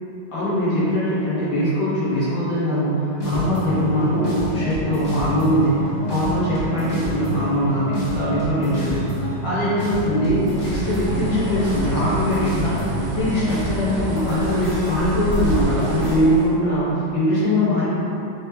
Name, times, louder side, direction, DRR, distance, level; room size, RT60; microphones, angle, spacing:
voice 1, 0.3-17.9, equal, 65° left, -11 dB, 1.8 m, -22 dB
sound 1, 3.2-16.1, right 1 dB, 30° left, 0.6 m, -27 dB
Bird, 10.3-16.6, right 1 dB, 75° right, 1.3 m, -29 dB
4.1 x 3.3 x 3.1 m, 2.8 s
omnidirectional pair, 2.3 m